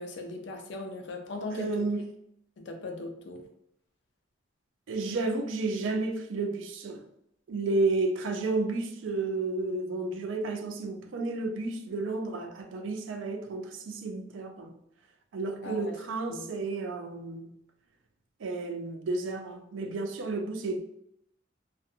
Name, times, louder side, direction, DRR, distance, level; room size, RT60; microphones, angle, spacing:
voice 1, 0.0-1.9 2.6-3.4 15.6-15.9 16.3-16.5, left 2 dB, 60° left, 0.4 m, -38 dB
voice 2, 1.5-2.1 4.9-7.0 7.5-14.7 15.3-17.5 18.4-20.8, right 3 dB, 75° right, 0.4 m, -32 dB
2.5 x 2.2 x 2.6 m
head